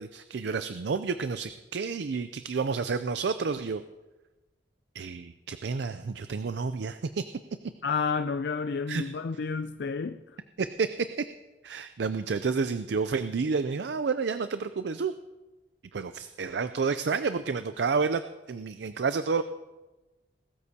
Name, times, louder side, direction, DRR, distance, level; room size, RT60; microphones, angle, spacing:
voice 1, 0.0-3.8 4.9-7.2 8.9-9.0 10.6-11.2 11.6-15.1 15.9-18.2 18.5-19.4, right 5 dB, 75° right, 0.5 m, -30 dB
voice 2, 7.8-10.2, left 5 dB, 75° left, 0.4 m, -30 dB
20.0 x 13.5 x 2.8 m
head